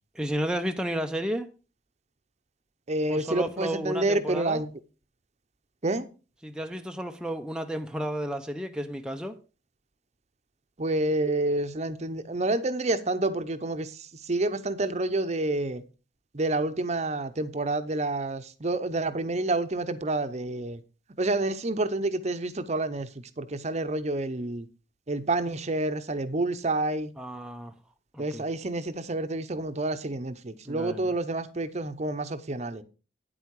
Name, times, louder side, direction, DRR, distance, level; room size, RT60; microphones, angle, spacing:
voice 1, 0.1-1.5 3.1-4.6 6.4-9.4 27.2-27.7 28.1-28.4 30.6-31.1, right 1 dB, 5° right, 0.6 m, -32 dB
voice 2, 2.9-4.7 5.8-6.0 10.8-13.9 14.3-15.8 16.3-20.8 21.2-23.1 23.4-24.6 25.1-27.1 28.2-32.8, right 2 dB, 35° right, 0.8 m, -28 dB
9.5 x 8.2 x 4.7 m
head